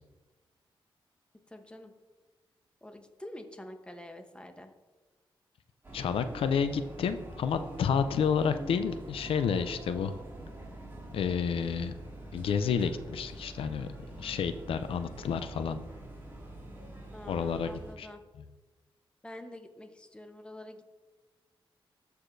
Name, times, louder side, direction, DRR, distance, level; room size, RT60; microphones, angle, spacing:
voice 1, 1.5-1.9 2.8-4.7 17.1-18.2 19.2-20.9, left 1 dB, 10° left, 6 dB, 0.9 m, -47 dB
sound 1, 5.8-17.9, right 1 dB, 25° right, 2.2 m, -45 dB
voice 2, 5.9-10.1 11.1-12.0 12.3-15.8 17.3-18.1, left 6 dB, 85° left, 10 dB, 0.4 m, -30 dB
13.5 x 4.7 x 2.6 m, 1.2 s
cardioid pair, 80°, 9 cm